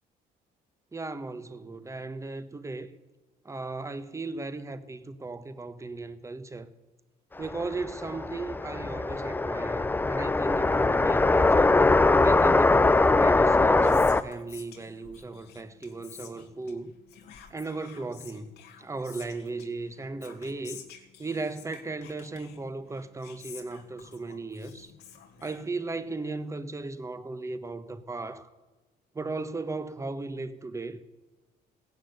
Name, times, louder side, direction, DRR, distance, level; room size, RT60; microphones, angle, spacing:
voice 1, 0.9-2.9 3.4-6.7 7.4-11.7 12.2-16.9 17.5-18.5 18.8-20.8 21.2-24.9 25.4-28.5 29.1-31.0, right 3 dB, 15° right, 1.1 m, -36 dB
sound 1, 7.4-14.2, left 3 dB, 10° left, 0.6 m, -22 dB
Whispering, 13.4-26.2, left 8 dB, 80° left, 2.1 m, -51 dB
16.0 x 10.5 x 8.2 m
cardioid pair, 110°, 17 cm